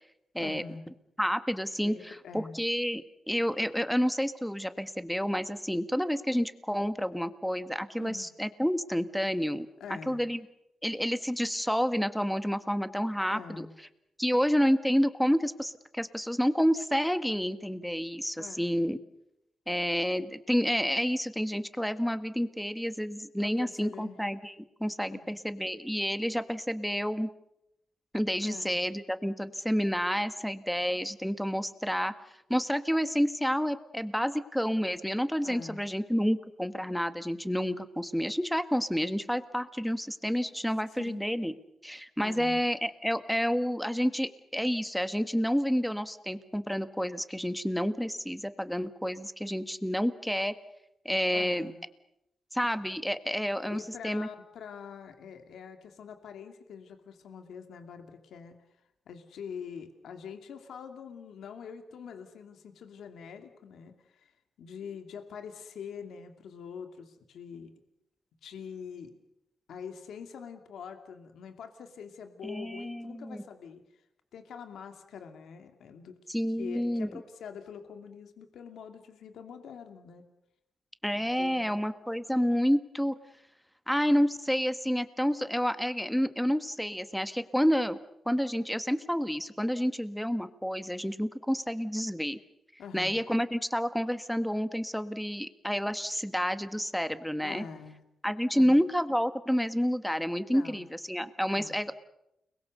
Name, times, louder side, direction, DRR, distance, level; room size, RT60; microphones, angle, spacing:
voice 1, 0.4-0.9 1.8-2.6 8.0-8.3 9.8-10.2 13.3-13.7 18.4-18.6 23.4-24.2 25.1-25.4 28.4-28.8 35.4-35.8 40.9-41.3 42.2-42.6 51.3-51.8 53.6-58.6 59.1-64.3 64.6-67.7 68.4-69.2 69.7-74.0 74.3-76.2 76.6-80.3 81.2-81.8 92.8-93.3 97.4-98.0 98.5-98.8 100.5-100.9 101.5-101.8, left 6 dB, 85° left, 6 dB, 2.7 m, -45 dB
voice 2, 1.2-9.7 10.1-10.4 10.8-13.7 14.2-19.0 19.7-24.5 24.8-27.3 28.1-32.1 32.5-41.5 41.8-50.5 51.1-51.7 52.5-54.3 72.4-73.4 76.3-77.1 81.0-83.2 83.9-88.0 88.3-92.4 92.9-97.7 98.2-101.9, equal, ahead, 11 dB, 1.7 m, -29 dB
30.0 x 21.5 x 6.8 m, 0.83 s
cardioid pair, 100°, 0 cm